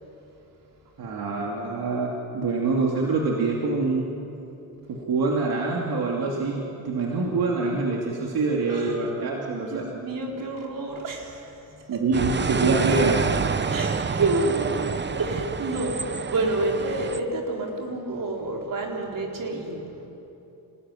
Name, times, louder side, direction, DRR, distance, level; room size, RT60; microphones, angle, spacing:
voice 1, 1.0-4.2 4.9-9.9 11.9-13.2, right 3 dB, 85° right, -2 dB, 2.9 m, -25 dB
voice 2, 8.7-9.1 9.7-12.1 13.7-14.9 15.1-20.1, right 2 dB, 65° right, 0 dB, 4.4 m, -29 dB
sound 1, 12.1-17.2, right 5 dB, 30° right, 0.9 m, -28 dB
26.5 x 19.0 x 10.0 m, 2.9 s
cardioid pair, 115°, 36 cm